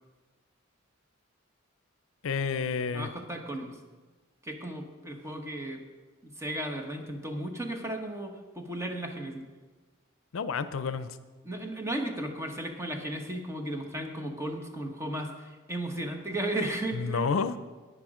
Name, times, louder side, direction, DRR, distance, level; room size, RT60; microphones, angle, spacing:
voice 1, 2.2-3.1 10.3-11.1 16.9-17.6, left 5 dB, 75° left, 12 dB, 0.5 m, -29 dB
voice 2, 2.9-3.8 4.4-5.8 6.2-9.4 11.4-17.3, right 1 dB, 15° right, 4 dB, 1.1 m, -35 dB
10.5 x 9.2 x 4.9 m, 1.3 s
head